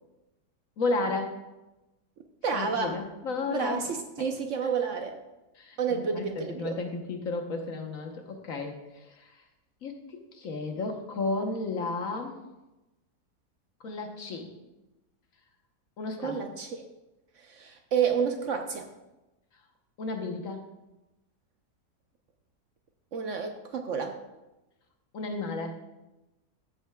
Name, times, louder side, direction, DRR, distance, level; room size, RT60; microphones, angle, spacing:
voice 1, 0.8-1.4 2.5-3.9 5.6-9.1 9.8-10.0 10.3-12.4 13.8-14.5 16.0-16.4 20.0-20.6 25.1-25.8, left 3 dB, 60° left, 4 dB, 1.3 m, -33 dB
voice 2, 2.4-3.0 3.5-5.2 5.8-6.8 16.2-16.8 17.4-18.9 23.1-24.2, right 6 dB, 60° right, 5 dB, 0.9 m, -30 dB
13.5 x 8.0 x 2.3 m, 1.0 s
omnidirectional pair, 1.6 m